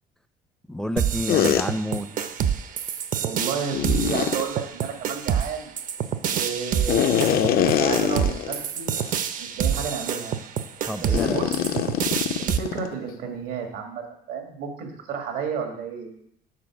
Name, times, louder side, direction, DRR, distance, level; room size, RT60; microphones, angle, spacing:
voice 1, 0.7-2.3 10.9-11.4, equal, 5° left, 10 dB, 0.4 m, -29 dB
sound 1, 1.0-12.6, right 8 dB, 50° right, 0.5 m, -27 dB
sound 2, 1.3-1.6 3.7-4.4 6.9-8.6 9.0-9.1 9.7-9.9 11.1-12.9, left 10 dB, 65° left, 0.5 m, -23 dB
voice 2, 3.2-5.7 6.3-9.0 9.4-10.4 11.0-11.6 12.4-16.1, right 6 dB, 90° right, 3 dB, 1.6 m, -32 dB
7.7 x 4.1 x 5.9 m, 0.71 s
cardioid pair, 110°, 17 cm